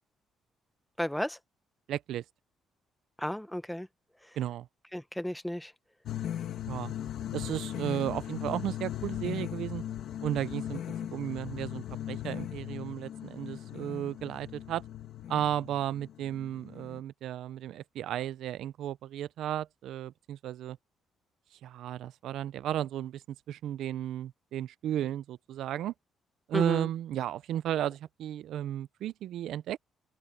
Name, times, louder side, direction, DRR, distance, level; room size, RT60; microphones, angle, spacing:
voice 1, 1.0-1.4 3.2-3.9 4.9-5.7 26.5-26.9, equal, 5° left, 1.0 m, -33 dB
voice 2, 1.9-2.2 4.4-4.7 6.7-6.9 7.3-9.8 10.2-10.8 11.1-14.8 15.3-20.8 21.6-25.9 26.5-29.8, right 11 dB, 75° right, 0.4 m, -34 dB
sound 1, 6.0-17.0, left 11 dB, 65° left, 1.8 m, -38 dB
open air
cardioid pair, 150°, 0 cm